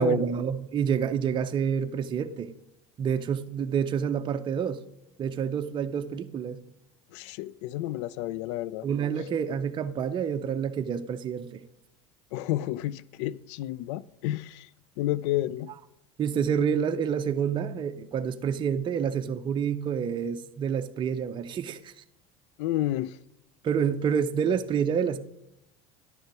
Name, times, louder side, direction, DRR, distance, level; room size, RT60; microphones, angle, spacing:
voice 1, 0.0-2.5 3.0-4.8 5.2-6.6 8.8-11.6 16.2-22.0 23.6-25.2, right 7 dB, 30° right, 0.6 m, -28 dB
voice 2, 7.1-8.9 9.2-9.3 12.3-14.7 15.0-15.7 22.6-23.2, left 14 dB, 75° left, 0.4 m, -31 dB
10.5 x 6.5 x 4.7 m
supercardioid pair, 100°, 15 cm